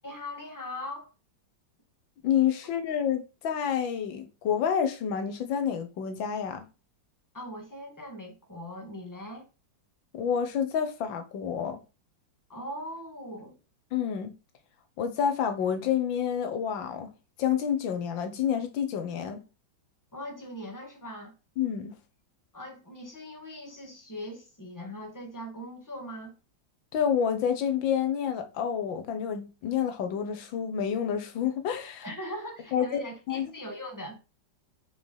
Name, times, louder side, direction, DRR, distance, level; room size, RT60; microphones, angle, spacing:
voice 1, 0.0-1.1 7.3-9.5 12.5-13.6 20.1-21.3 22.5-26.4 32.0-34.2, left 1 dB, 10° left, 1.9 m, -40 dB
voice 2, 2.2-6.6 10.1-11.8 13.9-14.3 15.0-17.1 17.4-19.4 21.6-22.0 26.9-32.0 32.7-33.0 33.3-33.5, left 8 dB, 85° left, 1.7 m, -28 dB
5.7 x 4.9 x 5.5 m
omnidirectional pair, 2.0 m